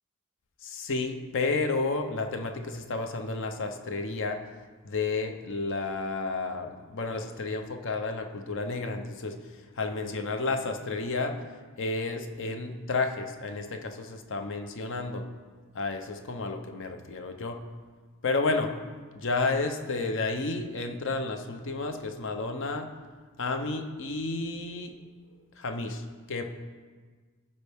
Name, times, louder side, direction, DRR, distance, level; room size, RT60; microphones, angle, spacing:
voice 1, 0.6-4.4 4.8-9.4 9.8-11.3 11.8-15.2 15.7-17.6 18.2-18.7 19.1-22.9 23.4-24.9 25.6-26.4, left 3 dB, 60° left, 6 dB, 0.8 m, -31 dB
15.0 x 5.4 x 3.5 m, 1.5 s
head